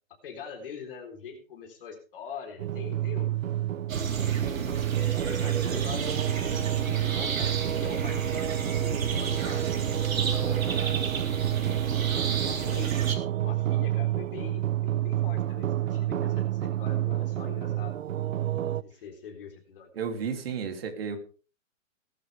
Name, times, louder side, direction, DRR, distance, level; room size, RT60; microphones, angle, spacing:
voice 1, 0.2-3.5 4.1-4.7 5.1-8.4 8.7-9.7 10.3-11.2 11.5-12.0 12.4-13.0 13.4-18.0 18.8-19.9, left 6 dB, 40° left, 3 dB, 4.0 m, -44 dB
sound 1, 2.6-18.8, right 13 dB, 70° right, 0.8 m, -29 dB
sound 2, 3.9-13.2, right 5 dB, 85° right, 3.9 m, -31 dB
voice 2, 19.9-21.2, right 6 dB, 45° right, 5 dB, 3.0 m, -32 dB
19.0 x 12.0 x 3.5 m, 0.36 s
hypercardioid pair, 170°, 40 cm